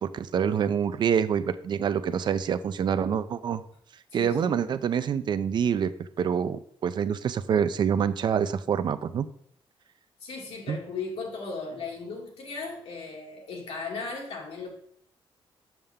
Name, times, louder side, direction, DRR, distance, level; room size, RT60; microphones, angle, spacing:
voice 1, 0.0-3.6 4.1-5.9 6.2-9.3 10.7-10.8, right 7 dB, 50° right, 12 dB, 0.4 m, -26 dB
voice 2, 4.1-4.6 6.8-7.0 10.2-14.7, left 4 dB, 80° left, -1 dB, 2.2 m, -37 dB
7.1 x 6.6 x 3.6 m, 0.66 s
wide cardioid pair, 180°, 10 cm